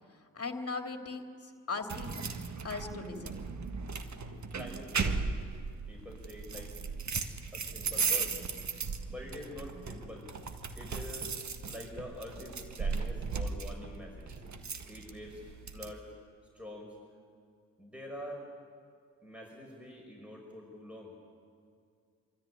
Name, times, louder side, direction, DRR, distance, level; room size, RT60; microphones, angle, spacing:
voice 1, 0.3-1.2 1.7-2.2 2.6-3.3, left 4 dB, 35° left, 5 dB, 2.7 m, -38 dB
sound 1, 1.9-15.9, right 5 dB, 45° right, 1.7 m, -37 dB
voice 2, 4.5-5.3 5.9-6.8 7.5-8.4 9.1-10.3 10.8-11.3 11.6-14.4 14.9-16.0 16.5-16.9 17.8-18.4 19.2-21.1, left 1 dB, 5° right, 0 dB, 5.6 m, -46 dB
26.0 x 13.5 x 9.9 m, 2.2 s
hypercardioid pair, 45°, 39 cm